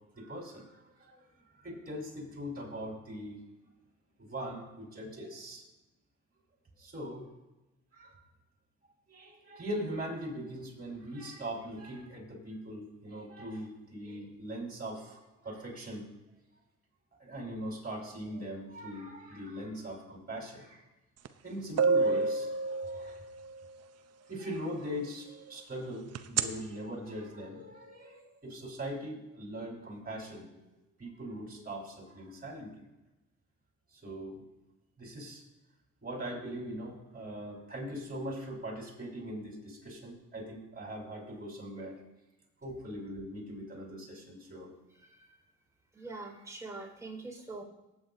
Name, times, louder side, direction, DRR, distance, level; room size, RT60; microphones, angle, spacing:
voice 1, 0.1-1.3 1.5-3.4 4.2-5.6 6.8-7.3 7.9-8.2 9.1-16.1 17.2-20.8 21.4-23.2 24.3-30.5 31.0-32.7 33.9-34.4 35.0-35.4 36.0-42.0 42.6-44.7, equal, 30° right, -1 dB, 4.7 m, -41 dB
sound 1, 21.3-21.4 21.8-23.5 26.2-26.4, right 4 dB, 55° right, 0.8 m, -27 dB
voice 2, 45.0-45.4 45.9-47.6, right 3 dB, 10° right, -2 dB, 4.6 m, -44 dB
19.0 x 8.7 x 2.7 m, 1.0 s
cardioid pair, 90°, 30 cm